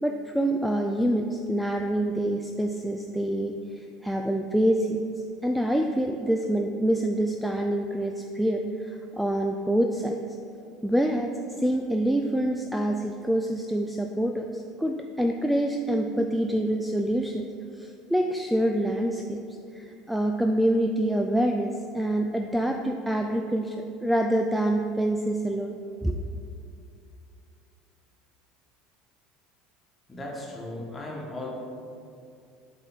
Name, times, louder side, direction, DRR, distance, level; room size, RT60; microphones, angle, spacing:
voice 1, 0.0-5.1 5.4-10.2 10.8-11.3 11.6-17.5 17.7-19.4 19.7-23.8 24.0-25.8 26.0-26.2, right 1 dB, ahead, 3 dB, 0.3 m, -26 dB
voice 2, 30.1-31.5, left 2 dB, 20° left, -2 dB, 1.5 m, -36 dB
7.8 x 4.3 x 4.0 m, 2.5 s
figure-of-eight pair, 70°, 0 cm